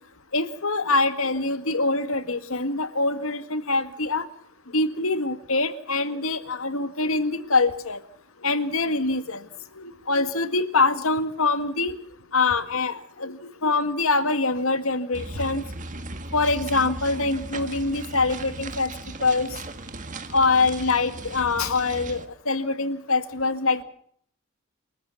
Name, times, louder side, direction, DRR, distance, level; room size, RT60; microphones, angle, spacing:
voice 1, 0.3-4.2 4.7-8.0 8.4-9.4 9.8-11.9 12.3-15.6 16.3-18.9 19.2-19.5 20.3-23.8, left 3 dB, 75° left, 11 dB, 2.0 m, -24 dB
sound 1, 15.1-22.3, right 2 dB, 35° right, 1.8 m, -37 dB
28.5 x 14.0 x 7.0 m, 0.63 s
head